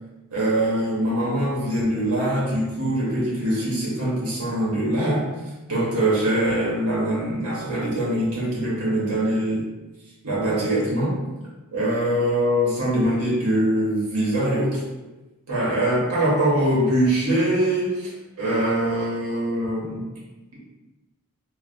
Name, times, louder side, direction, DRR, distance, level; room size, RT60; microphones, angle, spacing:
voice 1, 0.3-5.3 5.7-9.6 10.2-11.2 11.7-14.8 15.5-20.0 20.5-20.6, right 1 dB, 80° right, -6 dB, 1.0 m, -23 dB
3.3 x 2.3 x 2.5 m, 1.1 s
head